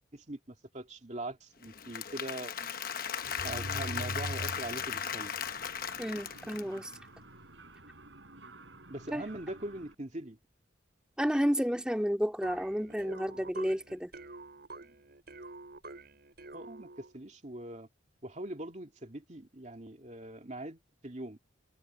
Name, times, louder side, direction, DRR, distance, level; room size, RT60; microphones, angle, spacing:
voice 1, 0.1-2.7 3.4-5.3 8.9-10.4 14.8-15.0 16.5-17.9 18.2-21.5, right 1 dB, 40° right, 2.5 m, -42 dB
Applause / Crowd, 1.6-6.9, left 8 dB, 50° left, 1.0 m, -37 dB
Mechanisms, 3.2-9.9, right 1 dB, 75° right, 5.5 m, -45 dB
voice 2, 6.0-6.9 9.1-9.2 11.2-14.1, equal, 5° right, 2.2 m, -31 dB
sound 1, 12.4-17.2, right 3 dB, 55° right, 6.4 m, -47 dB
head